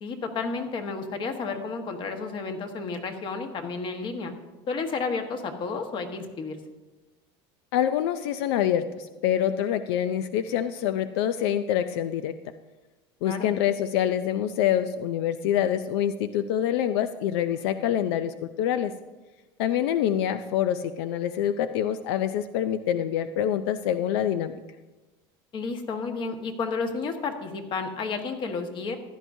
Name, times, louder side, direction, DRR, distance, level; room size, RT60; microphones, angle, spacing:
voice 1, 0.0-4.3 4.7-6.6 13.2-13.5 25.5-29.0, left 4 dB, 40° left, 5 dB, 1.4 m, -31 dB
voice 2, 7.7-12.3 13.2-18.9 19.6-24.5, left 10 dB, 85° left, 11 dB, 0.5 m, -26 dB
15.5 x 11.0 x 2.7 m, 1.1 s
supercardioid pair, 130°, 13 cm